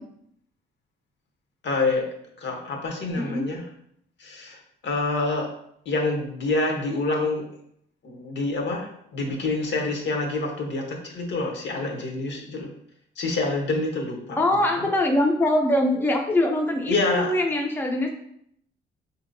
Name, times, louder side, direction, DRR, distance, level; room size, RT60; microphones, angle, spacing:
voice 1, 1.6-2.1 2.4-3.6 4.2-5.5 5.9-7.4 8.0-12.7 13.2-14.7 16.9-17.3, left 3 dB, 65° left, 1 dB, 0.9 m, -27 dB
voice 2, 3.2-3.5 14.4-18.1, left 1 dB, 10° left, 2 dB, 0.4 m, -23 dB
4.2 x 2.7 x 2.6 m, 0.71 s
cardioid pair, 90°, 20 cm